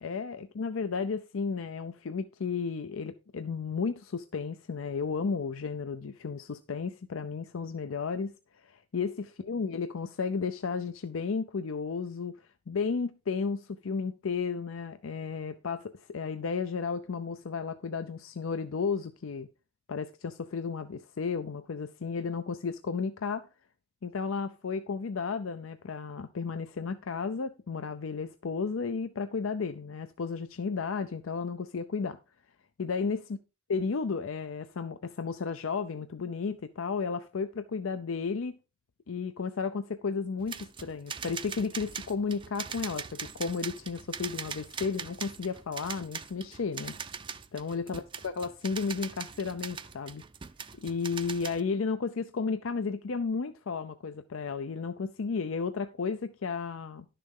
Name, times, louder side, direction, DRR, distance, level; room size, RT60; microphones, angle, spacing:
voice 1, 0.0-12.4 12.7-19.5 19.9-23.5 24.0-32.2 32.8-33.2 33.7-38.6 39.1-46.9 47.5-50.2 50.8-57.1, left 5 dB, 80° left, 0.5 m, -33 dB
sound 1, 40.4-51.6, right 6 dB, 25° right, 0.5 m, -41 dB
11.0 x 6.7 x 3.7 m
head